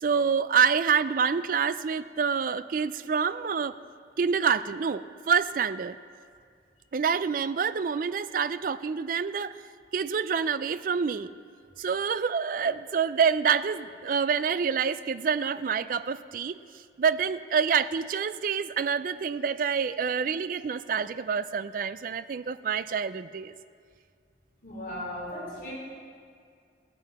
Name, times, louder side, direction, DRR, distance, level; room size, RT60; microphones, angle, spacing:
voice 1, 0.0-3.7 4.2-6.0 6.9-9.6 9.9-11.3 11.8-16.6 17.0-23.5, right 6 dB, 50° right, 14 dB, 0.3 m, -27 dB
voice 2, 24.6-25.7, left 1 dB, 50° left, -5 dB, 3.5 m, -37 dB
16.5 x 9.7 x 4.2 m, 2.2 s
head